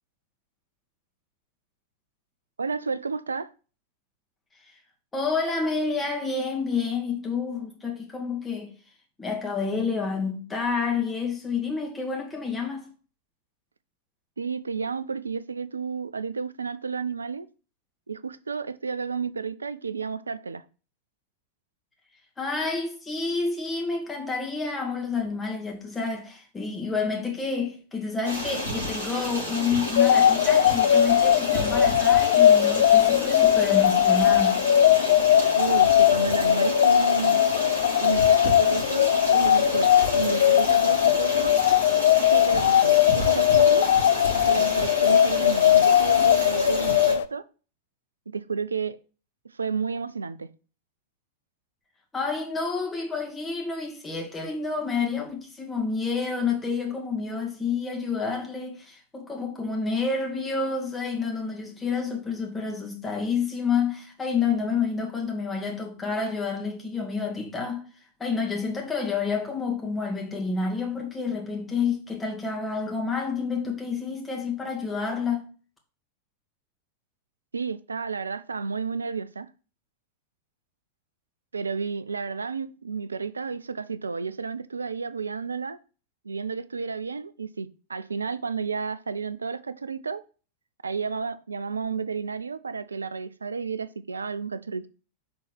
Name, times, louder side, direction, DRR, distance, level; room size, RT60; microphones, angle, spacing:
voice 1, 2.6-3.5 14.4-17.5 18.1-20.6 35.5-37.4 38.0-41.6 42.3-43.9 44.3-47.4 48.3-49.0 49.5-50.5 77.5-79.5 81.5-85.8 86.2-90.2 90.8-94.9, right 5 dB, 75° right, 0.4 m, -32 dB
voice 2, 5.1-8.7 9.2-12.9 22.4-34.6 52.1-67.8 68.2-75.5, left 5 dB, 15° left, 2.0 m, -29 dB
Stream, 28.2-47.1, left 1 dB, 80° left, 3.3 m, -32 dB
sound 1, 30.0-47.3, left 10 dB, 60° left, 0.3 m, -19 dB
6.2 x 4.1 x 4.6 m
figure-of-eight pair, 90°, 0 cm